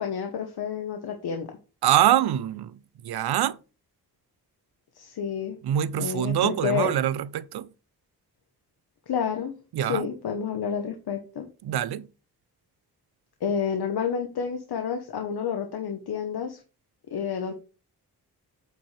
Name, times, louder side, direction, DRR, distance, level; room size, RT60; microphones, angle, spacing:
voice 1, 0.0-1.5 4.9-5.6 6.0-6.9 9.1-9.5 9.9-11.5 13.4-16.6 17.1-17.5, left 7 dB, 85° left, 1.2 m, -29 dB
voice 2, 1.8-3.6 5.6-7.7 9.7-10.1 11.6-12.1, right 11 dB, 90° right, 0.6 m, -24 dB
8.8 x 5.3 x 3.3 m
wide cardioid pair, 105°, 37 cm